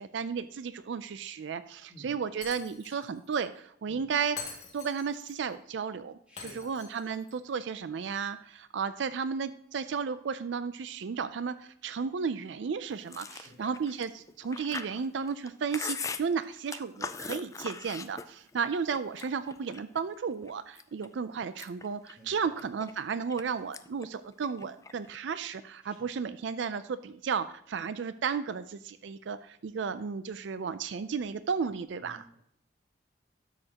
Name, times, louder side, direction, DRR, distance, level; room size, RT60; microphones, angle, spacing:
voice 1, 0.0-4.4 4.7-32.2, right 6 dB, 75° right, 13 dB, 0.4 m, -34 dB
Shatter, 2.4-3.1 3.3-3.4 4.4-5.3 6.4-7.3, left 5 dB, 35° left, 2.0 m, -44 dB
voice 2, 6.3-6.7 13.2-13.7 22.2-22.5 25.8-26.0 32.0-32.3, equal, 5° right, -4 dB, 3.4 m, -53 dB
Chewing mastication, 13.1-18.6 18.9-20.0 20.5-21.1 21.4-23.4 23.7-24.1 24.3-25.2, left 5 dB, 15° left, 0.3 m, -40 dB
12.5 x 6.5 x 2.9 m, 0.71 s
head